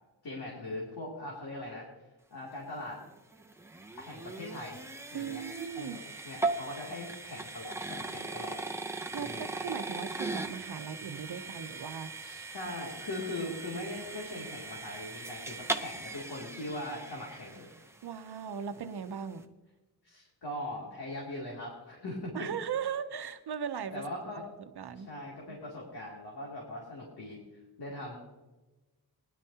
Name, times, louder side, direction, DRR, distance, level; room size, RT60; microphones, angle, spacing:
voice 1, 0.2-1.9 2.3-3.0 4.0-4.8 5.1-5.4 5.8-8.6 9.1-9.4 12.2-17.7 20.0-22.3 23.9-24.4 25.1-27.4 27.8-28.2, left 1 dB, 75° left, -4 dB, 2.8 m, -40 dB
sound 1, 2.9-18.1, right 3 dB, 5° right, 0.7 m, -39 dB
voice 2, 5.1-6.0 9.1-12.3 18.0-19.5 22.3-24.1 24.4-24.5 24.8-25.1 25.5-25.6, right 7 dB, 75° right, 9 dB, 0.9 m, -38 dB
20.0 x 11.0 x 2.9 m, 1.2 s
wide cardioid pair, 150°, 39 cm